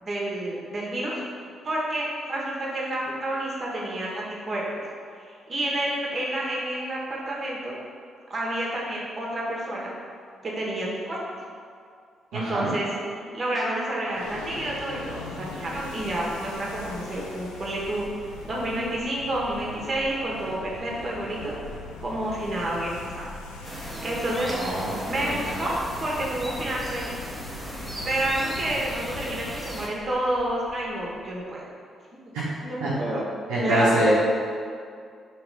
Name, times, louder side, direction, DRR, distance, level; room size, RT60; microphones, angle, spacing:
voice 1, 0.0-1.2 1.6-4.6 5.2-7.7 8.3-9.9 10.4-11.2 12.3-12.9 13.3-21.5 22.0-23.2 23.6-24.5 25.0-27.2 27.5-31.7 32.6-33.2 33.6-33.9, right 1 dB, 45° right, -4 dB, 1.0 m, -29 dB
voice 2, 12.3-12.7 24.5-25.4 32.8-32.9 33.5-34.1, right 1 dB, 80° right, -9 dB, 0.8 m, -25 dB
sound 1, 14.1-31.5, left 3 dB, 85° left, 0.3 m, -41 dB
sound 2, 23.6-29.9, right 1 dB, 10° right, 0.8 m, -37 dB
3.1 x 3.0 x 4.6 m, 2.2 s
hypercardioid pair, 45°, 0 cm